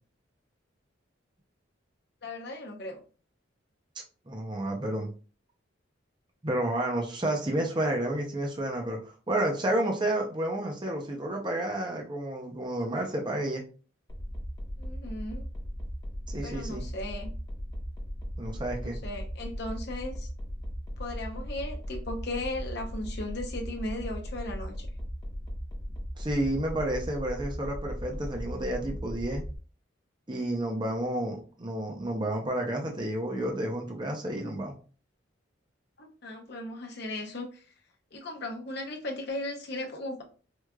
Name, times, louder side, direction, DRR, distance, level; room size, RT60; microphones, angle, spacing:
voice 1, 2.2-3.0 14.8-15.4 16.4-17.3 18.8-20.3 21.0-24.9 36.0-37.6 38.1-40.2, left 1 dB, 55° left, 0.8 m, -37 dB
voice 2, 4.3-5.1 6.4-13.6 16.3-16.9 18.4-19.0 26.2-29.4 30.3-34.7, right 1 dB, 25° right, 0.6 m, -30 dB
sound 1, 14.1-29.6, equal, 20° left, 0.9 m, -37 dB
4.6 x 2.5 x 2.3 m
head